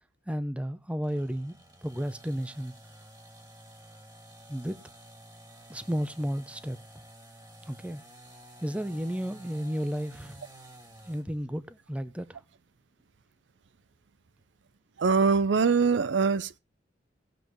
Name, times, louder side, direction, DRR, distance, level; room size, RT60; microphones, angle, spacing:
voice 1, 0.3-2.7 4.5-4.8 5.7-6.8 7.7-8.0 8.6-10.4 11.1-12.4, equal, 5° right, 0.7 m, -33 dB
sound 1, 1.0-11.3, right 1 dB, 20° right, 2.4 m, -51 dB
voice 2, 15.0-16.6, right 5 dB, 80° right, 0.5 m, -23 dB
18.5 x 7.3 x 3.1 m
head